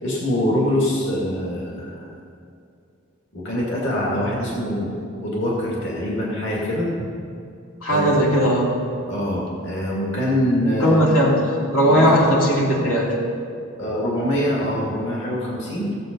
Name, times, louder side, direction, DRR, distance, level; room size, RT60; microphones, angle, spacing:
voice 1, 0.0-2.0 3.3-4.9 5.2-7.1 7.9-8.2 9.1-11.0 11.9-12.1 13.8-16.0, left 1 dB, 60° left, -4 dB, 2.3 m, -24 dB
voice 2, 7.8-8.7 10.8-11.4 11.7-13.1, equal, 85° left, -4 dB, 2.6 m, -17 dB
15.5 x 7.8 x 5.3 m, 2.5 s
head